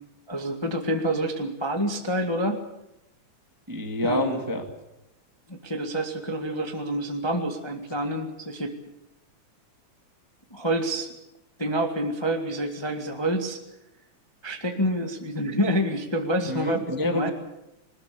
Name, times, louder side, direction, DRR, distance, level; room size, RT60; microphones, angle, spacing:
voice 1, 0.3-2.6 4.0-4.4 5.5-8.7 10.5-11.1 11.6-13.6 14.4-17.3, right 1 dB, 10° left, 3 dB, 1.3 m, -27 dB
voice 2, 3.7-4.6 16.5-17.3, left 1 dB, 10° right, 5 dB, 1.4 m, -27 dB
21.5 x 20.0 x 8.4 m, 0.87 s
omnidirectional pair, 3.4 m